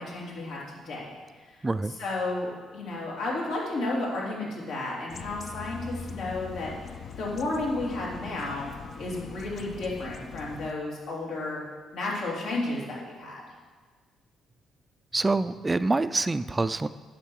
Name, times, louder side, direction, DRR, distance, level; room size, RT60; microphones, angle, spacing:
voice 1, 0.0-1.7 2.0-8.7 9.0-11.6 11.9-13.5, left 2 dB, 80° left, -4 dB, 3.2 m, -33 dB
voice 2, 1.6-1.9 15.1-16.9, right 3 dB, 20° right, 14 dB, 0.3 m, -26 dB
sound 1, 5.1-10.7, left 5 dB, 50° left, 0.5 m, -41 dB
9.9 x 6.7 x 6.5 m, 1.5 s
cardioid pair, 90°, 0 cm